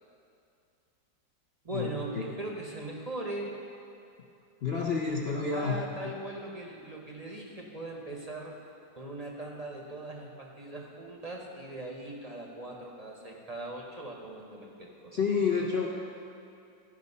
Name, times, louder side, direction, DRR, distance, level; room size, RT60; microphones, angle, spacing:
voice 1, 1.6-3.5 5.5-8.6 9.0-15.2, right 1 dB, 30° right, -1 dB, 0.7 m, -40 dB
voice 2, 4.6-5.8 15.1-15.9, left 5 dB, 65° left, -3 dB, 0.6 m, -29 dB
13.5 x 5.2 x 5.4 m, 2.6 s
omnidirectional pair, 1.9 m